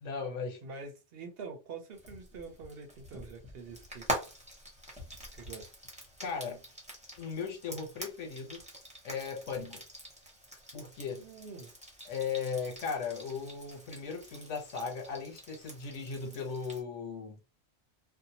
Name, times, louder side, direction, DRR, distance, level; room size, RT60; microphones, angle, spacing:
voice 1, 0.0-0.6 6.2-6.6 7.2-8.6 9.0-9.8 10.7-11.3 12.1-17.4, left 5 dB, 85° left, 1.2 m, -37 dB
voice 2, 0.6-4.1 5.3-5.7 11.2-11.7, right 4 dB, 60° right, 0.8 m, -45 dB
Frying (food), 2.0-16.8, equal, 5° right, 0.7 m, -45 dB
2.6 x 2.1 x 2.7 m
omnidirectional pair, 1.2 m